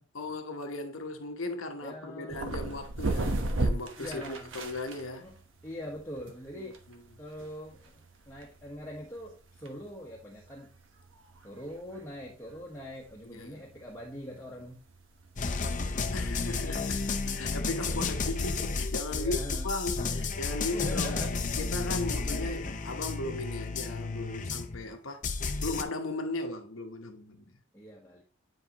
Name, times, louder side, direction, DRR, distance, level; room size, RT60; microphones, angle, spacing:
voice 1, 0.1-5.3 6.5-6.6 13.3-13.6 16.1-21.2 21.6-25.2 25.6-27.6, left 2 dB, 85° left, 1.0 m, -37 dB
voice 2, 1.8-2.4 4.0-4.5 5.2-5.4 5.6-6.8 7.2-10.7 11.4-14.8 19.1-19.7 20.7-21.4 22.1-22.6 27.7-28.2, equal, 15° left, 1.2 m, -42 dB
sound 1, 2.3-16.7, right 2 dB, 70° right, 1.1 m, -37 dB
sound 2, 15.4-24.9 25.2-25.8, left 4 dB, 40° left, 0.7 m, -32 dB
9.6 x 4.9 x 2.9 m
head